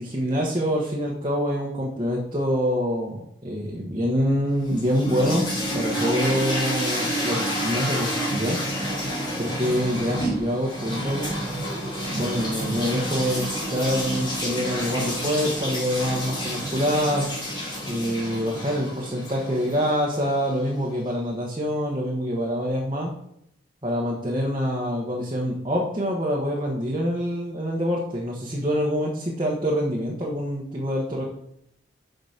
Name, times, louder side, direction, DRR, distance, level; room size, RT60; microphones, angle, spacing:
voice 1, 0.0-8.6 9.4-11.3 12.1-17.3 17.8-23.1 23.8-31.2, equal, 25° right, -3 dB, 1.4 m, -26 dB
sound 1, 4.6-20.6, equal, 25° left, 2.9 m, -29 dB
7.0 x 5.2 x 6.6 m, 0.74 s
head